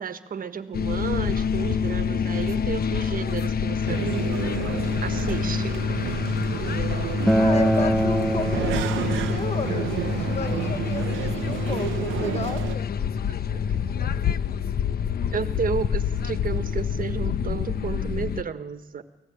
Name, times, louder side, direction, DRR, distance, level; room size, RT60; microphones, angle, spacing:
voice 1, 0.0-4.6 5.0-5.8 13.3-14.4 15.3-19.0, right 6 dB, 45° right, 10 dB, 1.6 m, -33 dB
sound 1, 0.7-18.4, left 7 dB, 50° left, 1.0 m, -27 dB
sound 2, 3.9-12.8, right 13 dB, 80° right, 0.8 m, -31 dB
Acoustic guitar, 7.3-12.5, right 1 dB, ahead, 1.2 m, -26 dB
voice 2, 7.4-12.9, left 5 dB, 30° left, 9 dB, 1.2 m, -33 dB
24.5 x 17.0 x 8.8 m, 1.2 s
cardioid pair, 90°, 20 cm